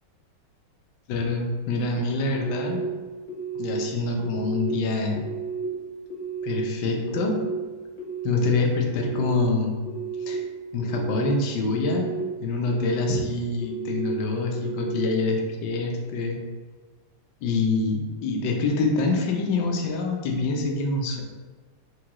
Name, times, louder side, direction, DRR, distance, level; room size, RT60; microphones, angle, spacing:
voice 1, 1.1-2.8 3.5-5.2 6.4-7.4 8.2-9.8 10.2-10.4 10.7-12.1 12.4-16.4 17.4-21.2, left 3 dB, 70° left, 1 dB, 1.1 m, -25 dB
sound 1, 2.3-2.8 3.3-3.8 4.2-4.7 5.2-5.6 6.1-6.6 7.0-7.5 8.0-8.5 8.9-9.4 9.9-10.3 10.8-11.3 11.7-12.2 12.7-13.2 13.6-14.1 14.5-15.0, right 6 dB, 40° left, 0.4 m, -33 dB
4.8 x 2.2 x 2.9 m, 1.3 s
omnidirectional pair, 2.2 m